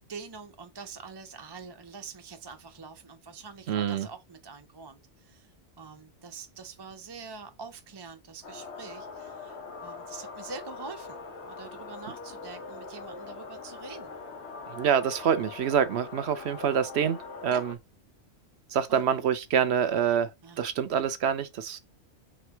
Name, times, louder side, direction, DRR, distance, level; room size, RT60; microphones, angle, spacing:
voice 1, 0.1-5.5 5.8-14.1 17.5-17.6 18.9-19.0 20.4-20.6 21.7-21.8, right 4 dB, 30° right, 0.5 m, -45 dB
voice 2, 3.7-4.1 14.7-17.7 18.7-20.3 20.6-21.8, right 8 dB, 65° right, 0.8 m, -26 dB
sound 1, 8.4-17.7, left 4 dB, 65° left, 1.1 m, -42 dB
3.5 x 3.3 x 4.6 m
omnidirectional pair, 1.2 m